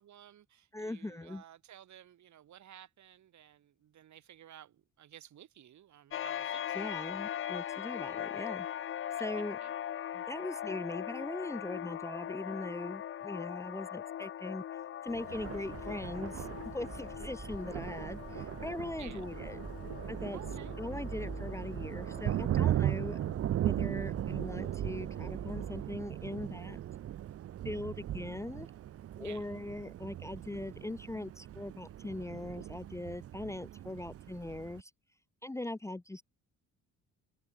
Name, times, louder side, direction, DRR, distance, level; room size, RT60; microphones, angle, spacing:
voice 1, 0.0-6.8 9.2-9.7 19.0-19.2 20.3-20.7 29.2-29.5, right 11 dB, 70° right, 5.2 m, -54 dB
voice 2, 0.7-1.4 6.7-8.7 9.2-9.6 10.1-19.6 20.1-20.4 20.8-23.2 23.6-26.8 27.6-28.7 29.2-34.9 35.4-36.2, left 2 dB, 10° left, 0.8 m, -40 dB
sound 1, 6.1-23.3, left 10 dB, 45° left, 0.6 m, -41 dB
Thunder, 15.1-34.8, right 12 dB, 50° right, 0.6 m, -38 dB
sound 2, 15.3-26.0, right 3 dB, 15° right, 1.1 m, -47 dB
cardioid pair, 90°, 30 cm